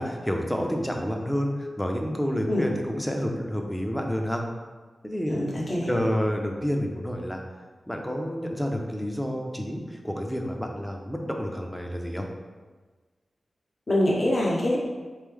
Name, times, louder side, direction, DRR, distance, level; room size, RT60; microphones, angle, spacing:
voice 1, 0.0-4.4 5.0-5.3 5.8-7.4 7.9-12.2, equal, 5° left, 2 dB, 0.5 m, -29 dB
voice 2, 5.3-5.9 13.9-14.8, left 1 dB, 40° left, -4 dB, 0.8 m, -24 dB
3.3 x 3.1 x 3.7 m, 1.3 s
wide cardioid pair, 120°, 0 cm